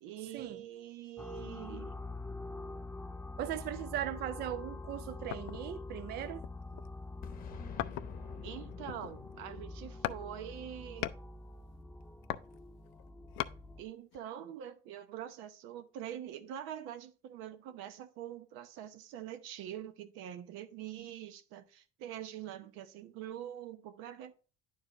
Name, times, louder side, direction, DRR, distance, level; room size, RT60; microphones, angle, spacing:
voice 1, 0.0-2.0 8.4-11.1 13.8-24.3, right 10 dB, 90° right, 0.8 m, -45 dB
sound 1, 1.2-13.8, left 2 dB, 10° left, 0.4 m, -45 dB
voice 2, 3.4-6.4, right 11 dB, 55° right, 0.5 m, -38 dB
sound 2, 5.3-5.7 6.4-7.0 7.8-8.3 8.7-9.4 10.0-10.3 10.6-11.3 12.0-13.6 14.1-14.2, left 15 dB, 85° left, 0.4 m, -39 dB
Boom, 7.2-11.9, left 6 dB, 45° left, 0.8 m, -50 dB
10.0 x 4.7 x 3.0 m
cardioid pair, 120°, 20 cm